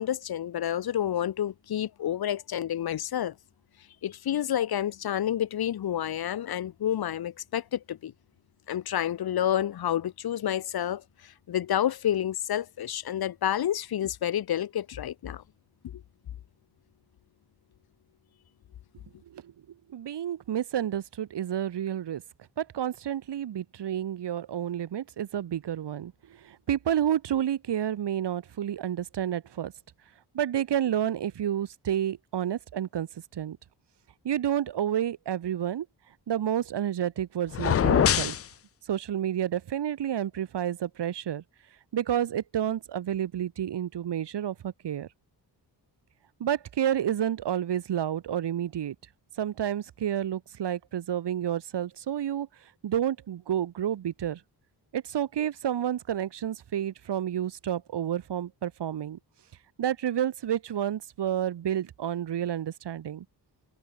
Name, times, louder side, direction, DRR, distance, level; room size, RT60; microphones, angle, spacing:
voice 1, 0.0-3.3 4.0-8.1 8.7-15.4, left 10 dB, 65° left, 0.8 m, -29 dB
voice 2, 19.9-22.2 22.6-29.7 30.3-33.6 34.2-35.8 36.3-38.3 38.9-41.4 41.9-45.1 46.4-48.9 49.4-52.5 52.8-54.4 54.9-59.2 59.8-63.2, right 10 dB, 90° right, 1.6 m, -30 dB
sound 1, 37.5-38.5, left 9 dB, 35° left, 0.4 m, -23 dB
wide cardioid pair, 120°, 41 cm